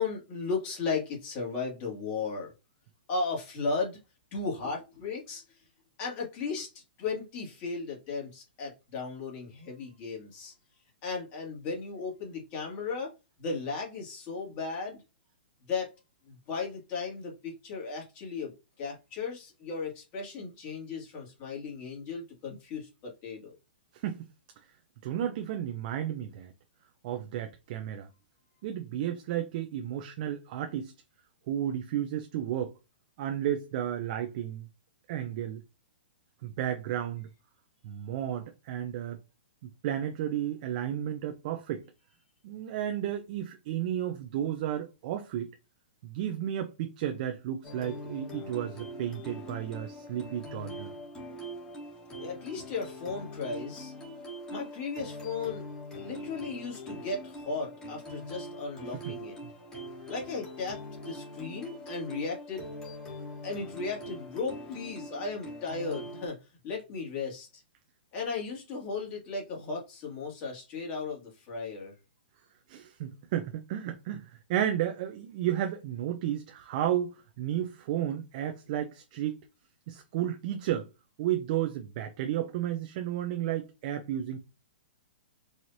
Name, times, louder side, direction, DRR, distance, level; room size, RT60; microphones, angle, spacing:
voice 1, 0.0-2.5 3.1-4.0 4.3-5.4 6.0-6.7 7.0-10.5 11.0-13.1 13.4-15.0 15.7-15.9 16.3-23.5 52.2-53.9 54.5-55.6 56.0-59.4 60.1-62.7 63.4-66.4 66.6-67.6 68.1-71.9, left 4 dB, 35° left, 2.0 m, -35 dB
voice 2, 23.9-24.3 25.0-26.5 27.0-28.1 28.6-30.9 31.5-32.7 33.2-34.7 35.1-35.6 36.4-37.3 37.8-39.2 39.8-41.8 42.4-45.5 46.0-50.9 58.9-59.1 59.4-59.5 72.7-79.4 79.9-80.9 81.2-84.4, right 11 dB, 50° right, 0.6 m, -33 dB
sound 1, 47.6-66.3, equal, 15° left, 1.6 m, -42 dB
4.8 x 2.8 x 2.7 m
hypercardioid pair, 140°, 6 cm